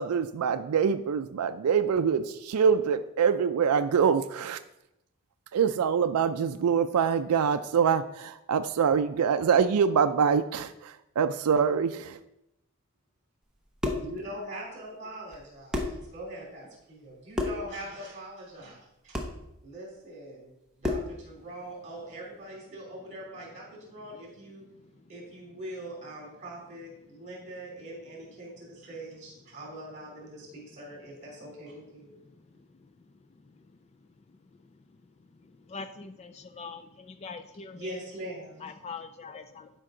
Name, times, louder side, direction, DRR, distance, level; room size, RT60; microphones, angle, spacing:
voice 1, 0.0-4.6 5.5-12.2, right 6 dB, 85° right, 10 dB, 0.4 m, -25 dB
sound 1, 13.5-14.1 15.3-15.4 15.7-16.0 17.3-17.7 19.1-19.4 20.8-21.2, left 2 dB, 5° right, 0.8 m, -30 dB
voice 2, 14.0-19.2 19.6-24.6 25.1-32.1 37.7-38.6, right 1 dB, 30° right, -3 dB, 3.2 m, -42 dB
voice 3, 32.2-32.9 33.5-33.7 35.4-38.0 38.6-39.7, left 4 dB, 30° left, 9 dB, 0.3 m, -43 dB
12.0 x 5.1 x 3.8 m, 0.88 s
head